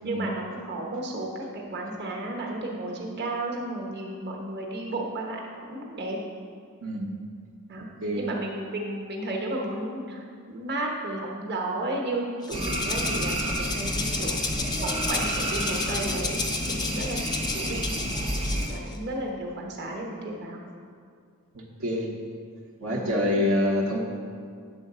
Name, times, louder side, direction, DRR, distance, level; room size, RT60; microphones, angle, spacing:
voice 1, 0.0-6.2 7.7-7.9 8.1-14.4 14.8-17.2 17.5-17.9 18.7-20.6 22.8-23.1, right 1 dB, 50° right, -1 dB, 1.1 m, -33 dB
Rattle (instrument), 12.4-19.0, left 4 dB, 20° left, 0.4 m, -33 dB
sound 1, 12.5-18.7, right 1 dB, 25° right, 0.8 m, -30 dB
voice 2, 21.5-22.1 22.8-24.0, left 1 dB, 75° right, -2 dB, 1.0 m, -26 dB
9.0 x 4.0 x 6.6 m, 2.2 s
head